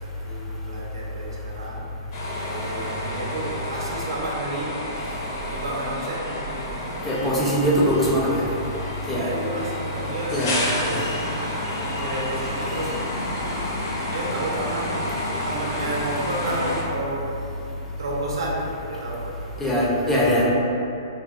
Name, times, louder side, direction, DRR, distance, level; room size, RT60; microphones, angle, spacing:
voice 1, 0.0-1.9 2.4-7.6 9.1-13.1 14.0-15.1 15.4-19.4, right 1 dB, 85° right, -3 dB, 0.6 m, -32 dB
sound 1, 2.1-16.8, left 1 dB, 60° left, 0.6 m, -30 dB
voice 2, 7.1-8.4 9.1-9.3 10.3-10.9 19.6-20.5, equal, 10° left, -6 dB, 0.4 m, -21 dB
3.2 x 2.0 x 2.3 m, 2.8 s
hypercardioid pair, 150°, 2 cm